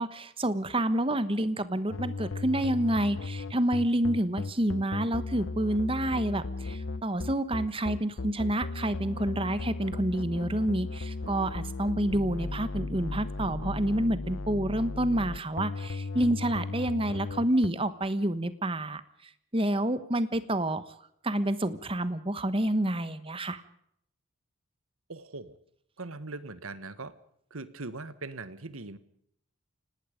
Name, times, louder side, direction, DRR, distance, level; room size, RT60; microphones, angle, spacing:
voice 1, 0.0-19.0 19.5-20.8 21.2-23.6, right 1 dB, 25° right, 13 dB, 1.2 m, -28 dB
sound 1, 1.9-17.7, left 3 dB, 60° left, 0.8 m, -36 dB
voice 2, 25.1-25.6 26.0-27.1 27.5-29.0, right 3 dB, 75° right, 14 dB, 1.4 m, -40 dB
28.5 x 19.0 x 5.2 m, 0.73 s
head